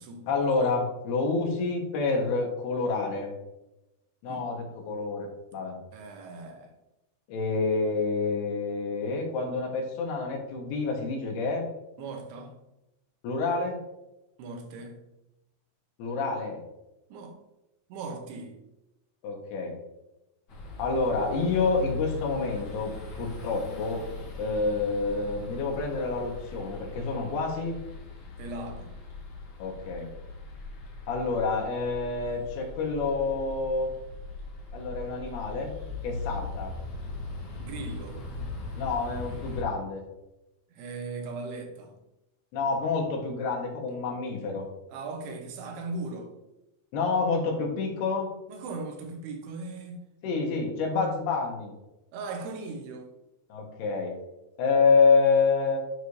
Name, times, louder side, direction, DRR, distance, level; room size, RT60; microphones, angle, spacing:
voice 1, 0.3-3.3 4.2-5.8 7.3-11.7 13.2-13.8 16.0-16.6 19.2-19.7 20.8-22.9 23.2-24.0 24.4-27.8 29.6-30.1 31.1-33.9 34.7-35.7 36.0-36.7 38.8-40.0 42.5-44.7 46.9-48.3 50.2-51.7 53.5-54.1 54.6-55.8, left 4 dB, 90° left, 3.4 m, -28 dB
voice 2, 5.9-6.7 12.0-12.5 14.4-15.0 17.1-17.4 17.9-18.6 28.4-29.0 31.1-31.2 37.6-38.2 40.7-41.9 44.9-46.4 48.5-50.0 52.1-53.1, right 3 dB, 85° right, 3.0 m, -38 dB
sound 1, 20.5-39.6, left 3 dB, 70° left, 1.2 m, -40 dB
11.0 x 4.8 x 2.7 m
omnidirectional pair, 4.5 m